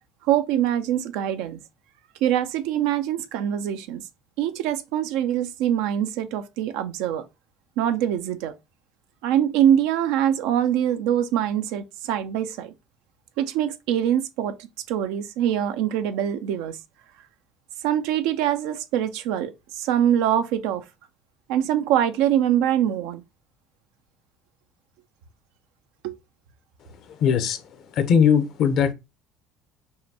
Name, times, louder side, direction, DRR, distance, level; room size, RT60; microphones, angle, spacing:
voice 1, 0.3-1.6 2.2-4.0 4.4-7.3 7.8-8.6 9.2-12.7 13.4-14.6 14.9-16.8 17.8-20.8 21.5-23.2 26.0-26.2, right 10 dB, 75° right, 0.4 m, -24 dB
voice 2, 27.2-27.6 27.9-28.9, left 7 dB, 60° left, 0.7 m, -19 dB
5.5 x 2.2 x 2.8 m
hypercardioid pair, 75°, 0 cm